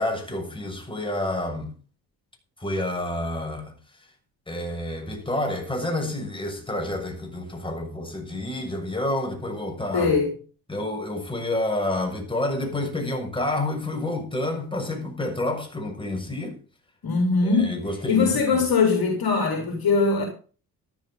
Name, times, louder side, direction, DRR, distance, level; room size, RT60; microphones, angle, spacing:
voice 1, 0.0-1.7 2.6-3.7 4.5-10.1 10.7-16.6 17.4-18.7, left 1 dB, 10° left, 6.7 m, -29 dB
voice 2, 9.9-10.3 17.0-17.8 18.1-20.3, left 4 dB, 45° left, 4.2 m, -21 dB
14.0 x 12.5 x 4.0 m
figure-of-eight pair, 40°, 48 cm